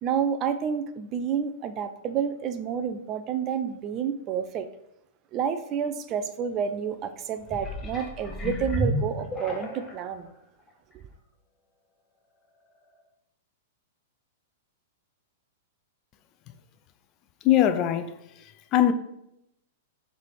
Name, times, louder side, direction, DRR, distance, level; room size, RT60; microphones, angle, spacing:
voice 1, 0.0-4.7 5.3-10.3, right 7 dB, 35° right, 0.6 m, -29 dB
sound 1, 7.4-10.1 10.7-10.8, equal, 15° left, 1.2 m, -31 dB
voice 2, 17.4-18.1 18.7-18.9, left 11 dB, 40° left, 0.5 m, -20 dB
6.5 x 3.5 x 4.8 m
hypercardioid pair, 110°, 0 cm